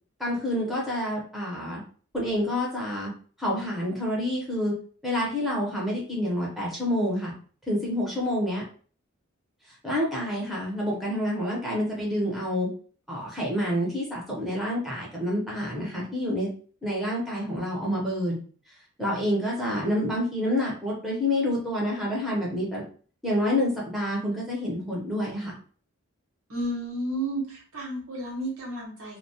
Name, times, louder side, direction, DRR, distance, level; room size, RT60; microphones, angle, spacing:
voice 1, 0.2-1.8 2.1-3.1 3.4-4.7 5.0-7.3 7.7-8.6 9.8-12.7 13.1-16.5 16.8-18.4 19.0-22.8 23.2-25.5, left 1 dB, ahead, -5 dB, 0.7 m, -28 dB
voice 2, 26.5-29.2, right 1 dB, 85° right, -2 dB, 0.9 m, -32 dB
2.1 x 2.1 x 2.7 m, 0.43 s
head